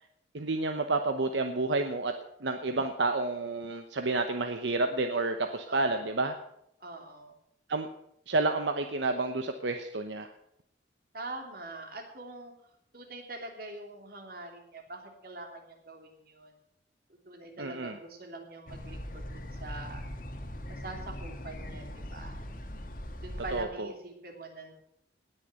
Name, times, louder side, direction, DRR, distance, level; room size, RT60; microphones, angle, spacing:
voice 1, 0.3-2.1 2.4-6.4 7.7-7.9 8.3-10.3 17.6-18.0 23.5-23.9, right 3 dB, 75° right, 6 dB, 0.9 m, -30 dB
voice 2, 5.7-6.1 6.8-7.3 11.1-12.5 12.9-16.5 17.1-20.0 20.7-22.4 23.2-24.7, right 2 dB, 50° right, 2 dB, 3.1 m, -44 dB
sound 1, 18.7-23.6, equal, 50° left, 1.8 m, -40 dB
18.5 x 6.7 x 7.8 m, 0.78 s
head